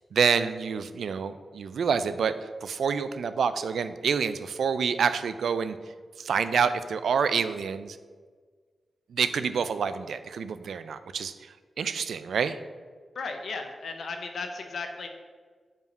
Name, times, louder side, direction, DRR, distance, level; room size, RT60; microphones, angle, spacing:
voice 1, 0.1-2.3 2.6-5.8 6.2-8.0 9.1-12.6, right 6 dB, 90° right, 12 dB, 0.3 m, -27 dB
voice 2, 13.1-15.1, left 4 dB, 75° left, 5 dB, 0.8 m, -35 dB
5.4 x 5.0 x 5.2 m, 1.5 s
wide cardioid pair, 105°, 0 cm